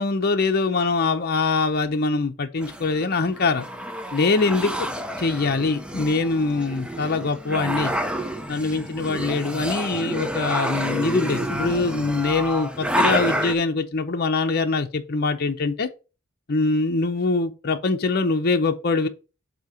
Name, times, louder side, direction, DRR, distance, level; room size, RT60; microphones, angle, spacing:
voice 1, 0.0-3.7 4.1-4.7 5.2-7.9 8.5-15.9 16.5-19.1, left 3 dB, 50° left, 0.8 m, -23 dB
sound 1, 2.6-13.5, equal, 5° right, 0.6 m, -29 dB
7.8 x 2.9 x 5.8 m
head